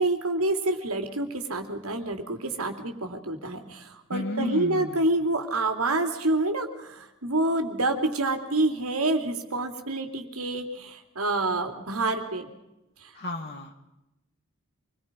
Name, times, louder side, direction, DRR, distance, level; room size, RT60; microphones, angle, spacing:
voice 1, 0.0-12.5, right 2 dB, 85° right, 5 dB, 3.3 m, -27 dB
voice 2, 4.1-5.1 13.1-13.7, left 1 dB, 50° left, 2 dB, 2.0 m, -33 dB
27.5 x 22.0 x 5.4 m, 0.91 s
head